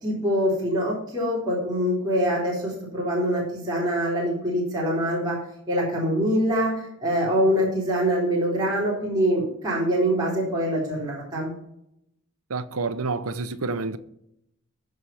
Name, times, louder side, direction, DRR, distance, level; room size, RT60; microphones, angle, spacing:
voice 1, 0.0-5.4 5.7-11.5, equal, 20° right, 3.6 m, -24 dB
voice 2, 12.5-14.0, right 3 dB, 85° right, 0.8 m, -28 dB
14.5 x 4.9 x 5.7 m
head